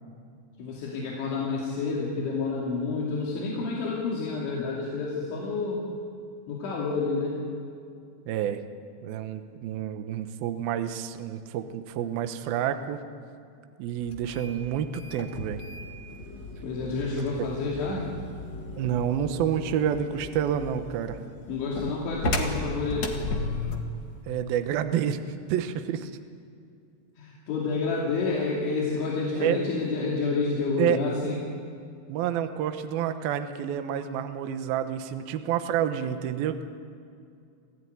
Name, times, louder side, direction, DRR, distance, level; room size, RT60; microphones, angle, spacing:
voice 1, 0.6-5.8 6.5-7.5 16.6-18.1 21.5-23.2 27.2-31.4, left 4 dB, 85° left, -4 dB, 5.0 m, -29 dB
voice 2, 8.3-8.6 9.0-13.0 13.8-15.6 18.8-21.2 24.3-26.1 29.4-29.6 30.8-31.1 32.1-36.6, right 9 dB, 70° right, 8 dB, 2.5 m, -29 dB
sound 1, 14.0-24.0, left 2 dB, 50° left, 1.2 m, -35 dB
26.5 x 16.0 x 9.5 m, 2.4 s
omnidirectional pair, 5.3 m